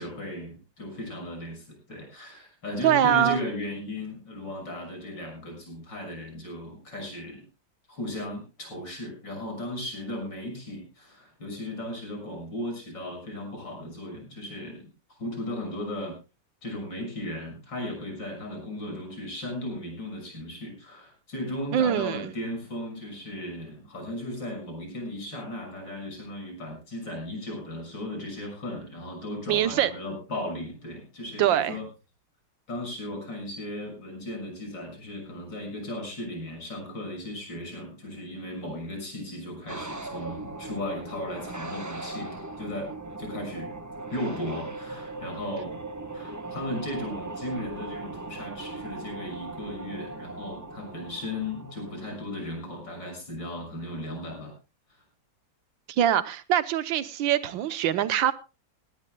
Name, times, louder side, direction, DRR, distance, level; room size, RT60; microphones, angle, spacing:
voice 1, 0.0-7.4 7.9-14.9 15.2-16.1 16.6-31.8 32.7-42.9 43.2-43.8 44.1-45.8 46.1-54.5, left 1 dB, 75° left, 2 dB, 7.1 m, -36 dB
voice 2, 2.8-3.4 21.7-22.3 29.5-29.9 31.4-31.8 55.9-58.3, right 10 dB, 90° right, 14 dB, 1.6 m, -23 dB
sound 1, 39.7-52.7, right 2 dB, 15° right, 0.6 m, -39 dB
19.0 x 17.0 x 2.3 m, 0.30 s
omnidirectional pair, 2.0 m